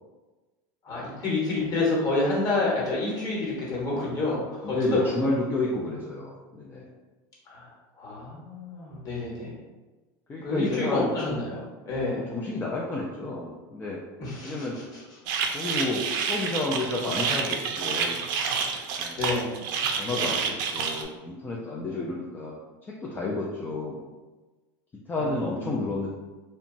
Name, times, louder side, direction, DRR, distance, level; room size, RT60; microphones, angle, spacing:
voice 1, 0.8-5.2 7.5-7.7 8.0-9.5 10.4-12.3 14.2-15.0 19.2-20.2 21.9-22.0 25.2-25.8, left 2 dB, 35° left, -5 dB, 1.1 m, -29 dB
voice 2, 4.6-6.9 10.3-11.1 12.1-14.0 14.4-14.8 15.5-18.2 19.0-19.2 20.0-22.5 23.0-24.1 25.1-26.1, left 2 dB, 20° left, -4 dB, 0.4 m, -30 dB
sound 1, 15.3-21.0, right 6 dB, 70° right, 0.4 m, -29 dB
2.8 x 2.2 x 2.6 m, 1.2 s
supercardioid pair, 125°, 11 cm